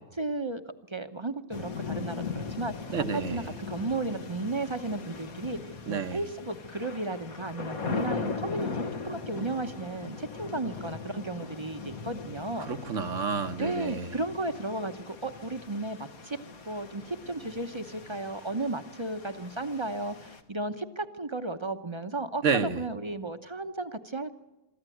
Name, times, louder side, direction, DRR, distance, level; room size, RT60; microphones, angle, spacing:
voice 1, 0.2-0.6 0.9-5.6 5.9-12.7 13.6-16.4 16.7-22.4 22.8-24.3, right 2 dB, 25° right, 0.8 m, -34 dB
sound 1, 1.5-20.4, left 5 dB, 85° left, 2.0 m, -39 dB
voice 2, 2.9-3.5 5.9-6.2 12.6-14.1 22.4-22.9, right 6 dB, 65° right, 1.4 m, -30 dB
24.0 x 14.0 x 9.2 m
omnidirectional pair, 1.5 m